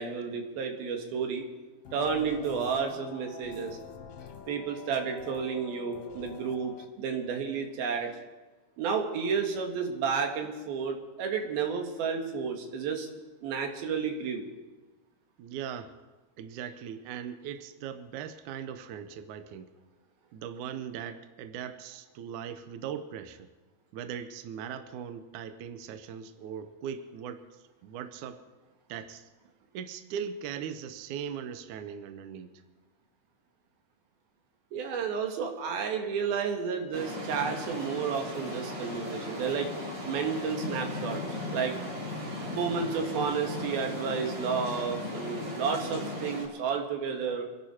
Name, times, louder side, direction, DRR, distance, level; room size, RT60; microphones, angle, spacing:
voice 1, 0.0-1.4 1.9-3.8 4.5-8.1 8.8-13.1 13.4-14.5 34.7-39.7 40.0-41.8 42.5-47.4, right 6 dB, 85° right, 3 dB, 3.5 m, -31 dB
sound 1, 1.8-6.9, left 6 dB, 80° left, 1.3 m, -46 dB
voice 2, 15.4-16.0 16.4-19.7 20.3-23.5 23.9-27.4 27.8-28.4 28.9-29.3 29.7-32.5, right 8 dB, 70° right, 10 dB, 2.0 m, -39 dB
sound 2, 36.9-46.5, left 1 dB, 30° right, 4.7 m, -37 dB
26.0 x 11.5 x 4.4 m, 1.2 s
omnidirectional pair, 4.2 m